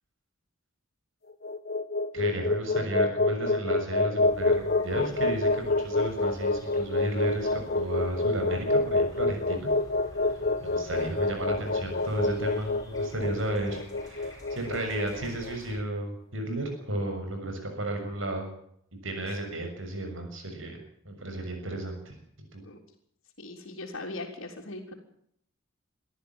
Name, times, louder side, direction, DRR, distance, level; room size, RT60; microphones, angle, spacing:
sound 1, 1.3-15.6, left 2 dB, 45° left, 1.4 m, -27 dB
voice 1, 2.1-9.7 10.3-18.5 19.0-20.8 21.1-22.2 22.5-22.6, right 1 dB, 65° right, 4 dB, 6.8 m, -33 dB
sound 2, 4.2-15.8, left 1 dB, 15° left, 7.9 m, -49 dB
voice 2, 23.4-24.9, left 2 dB, 65° left, -3 dB, 3.7 m, -39 dB
24.0 x 14.0 x 9.0 m, 0.70 s
head